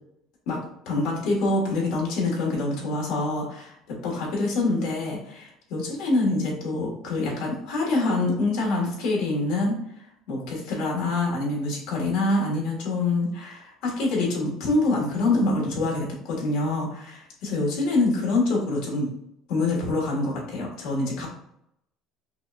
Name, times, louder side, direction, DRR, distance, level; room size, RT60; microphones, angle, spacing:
voice 1, 0.8-19.1 19.5-21.3, left 2 dB, 65° left, -2 dB, 1.5 m, -26 dB
5.5 x 2.3 x 2.4 m, 0.76 s
cardioid pair, 170°, 0 cm